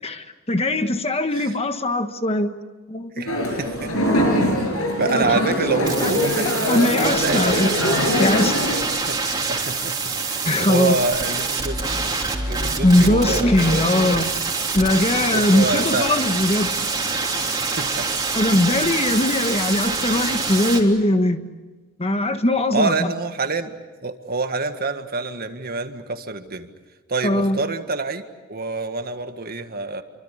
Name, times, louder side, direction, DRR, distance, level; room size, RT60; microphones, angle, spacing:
voice 1, 0.0-2.5 2.9-3.3 5.1-6.1 6.4-8.6 10.4-10.9 12.8-14.3 14.7-16.7 18.3-21.4 22.0-22.9 27.2-27.6, left 1 dB, 30° left, 8 dB, 1.4 m, -20 dB
voice 2, 3.2-4.0 5.0-7.4 8.9-12.0 12.5-13.9 15.3-16.1 17.4-17.5 17.8-18.2 18.9-19.0 22.7-23.7 24.0-26.7 27.1-28.2 28.5-30.0, right 3 dB, 45° right, 7 dB, 1.8 m, -27 dB
sound 1, 3.3-8.8, equal, 75° left, 7.0 m, -22 dB
sound 2, 5.8-20.8, right 4 dB, 20° right, 3.3 m, -25 dB
28.5 x 24.5 x 8.4 m, 1.2 s
head